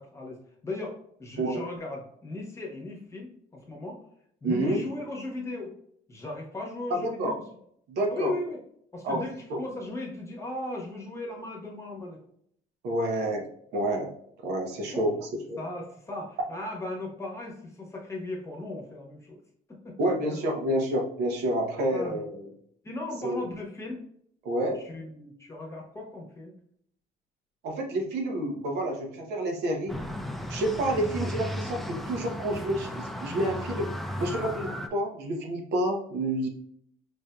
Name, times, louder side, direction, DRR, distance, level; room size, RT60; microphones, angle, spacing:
voice 1, 0.0-4.0 4.4-5.8 6.1-7.4 8.1-8.6 8.9-12.2 13.0-13.3 14.9-15.1 15.6-19.4 19.7-20.4 21.9-22.2 22.8-24.1 24.7-26.5, left 2 dB, 15° left, -1 dB, 1.0 m, -37 dB
voice 2, 4.4-4.8 6.9-7.3 7.9-8.3 9.0-9.2 9.5-9.6 12.8-13.5 13.7-14.1 14.4-15.6 20.0-22.5 23.2-23.4 24.4-24.8 27.6-30.0 30.5-33.9 34.2-36.5, right 1 dB, 80° right, 1 dB, 0.8 m, -29 dB
sound 1, 29.9-34.9, left 1 dB, ahead, 0.3 m, -35 dB
4.9 x 2.6 x 2.2 m, 0.68 s
cardioid pair, 110°, 17 cm